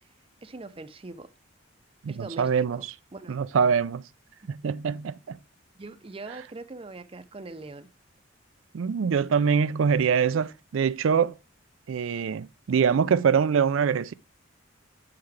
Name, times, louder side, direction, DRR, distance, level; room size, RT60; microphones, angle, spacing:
voice 1, 0.4-1.3 2.1-2.8 3.1-3.4 4.4-4.5 5.8-7.9, right 3 dB, 25° right, 0.6 m, -42 dB
voice 2, 2.0-2.8 3.3-4.0 4.5-5.4 8.7-11.3 11.9-14.1, right 6 dB, 75° right, 0.4 m, -24 dB
7.7 x 5.8 x 3.2 m
head